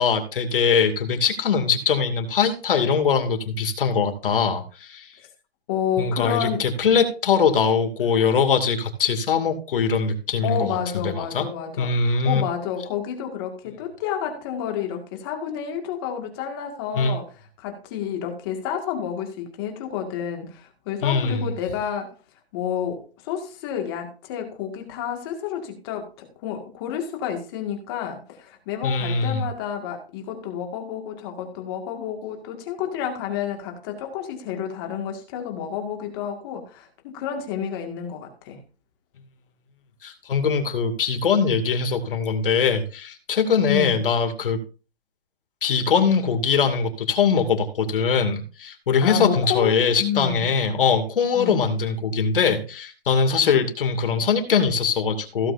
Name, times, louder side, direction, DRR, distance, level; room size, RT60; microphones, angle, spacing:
voice 1, 0.0-5.1 6.0-10.8 11.0-11.5 11.8-12.4 16.9-17.2 21.0-21.4 28.8-29.5 40.0-44.6 45.6-55.5, left 6 dB, 60° left, 5 dB, 2.6 m, -22 dB
voice 2, 5.7-6.6 10.4-17.2 17.6-22.1 22.5-38.6 43.7-44.0 49.0-50.5 51.3-51.6, left 8 dB, 25° left, 3 dB, 2.0 m, -30 dB
16.0 x 7.8 x 2.7 m, 0.35 s
hypercardioid pair, 170°, 31 cm